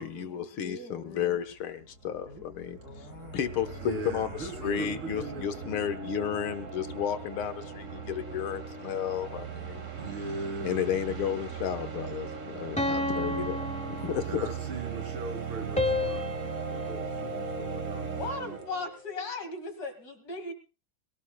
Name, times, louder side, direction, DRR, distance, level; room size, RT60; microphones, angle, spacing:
voice 1, 0.0-3.1 3.3-9.9 10.6-14.5, left 9 dB, 80° left, 9 dB, 2.0 m, -33 dB
voice 2, 0.6-1.4 2.3-2.4 2.8-3.4 14.0-14.2 18.2-20.5, left 3 dB, 45° left, 7 dB, 2.5 m, -38 dB
sound 1, 1.5-18.9, right 6 dB, 40° right, 1.8 m, -39 dB
voice 3, 3.8-5.4 9.7-10.9 14.2-16.3 16.7-18.6, right 3 dB, 80° right, 4 dB, 4.0 m, -40 dB
sound 2, 12.8-14.7 15.8-18.1, left 2 dB, 5° left, 0.6 m, -33 dB
22.0 x 17.5 x 2.3 m, 0.33 s
omnidirectional pair, 2.3 m